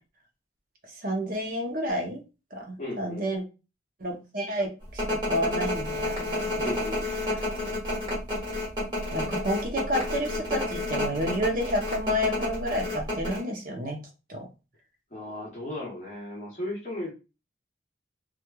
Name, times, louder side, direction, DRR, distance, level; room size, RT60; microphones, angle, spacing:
voice 1, 1.0-2.2 2.5-3.4 4.0-6.6 9.1-14.0 14.3-14.5, equal, 45° right, 2 dB, 0.7 m, -30 dB
voice 2, 2.8-3.3 6.6-7.0 15.1-17.1, left 1 dB, 35° left, -4 dB, 0.9 m, -35 dB
sound 1, 5.0-13.4, left 1 dB, 20° right, 1.2 m, -30 dB
3.0 x 2.3 x 2.2 m, 0.30 s
head